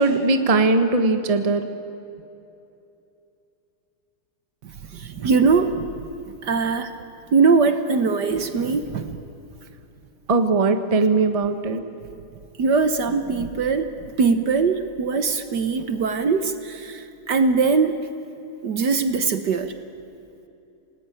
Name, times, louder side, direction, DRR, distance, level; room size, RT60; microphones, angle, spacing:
voice 1, 0.0-1.6 10.3-11.8, right 3 dB, 20° right, 8 dB, 1.1 m, -19 dB
voice 2, 4.6-6.0 6.4-6.9 7.3-9.2 12.6-13.9 14.2-18.0 18.6-19.7, right 4 dB, 55° right, 9 dB, 1.5 m, -21 dB
28.5 x 19.5 x 9.2 m, 2.8 s
omnidirectional pair, 2.4 m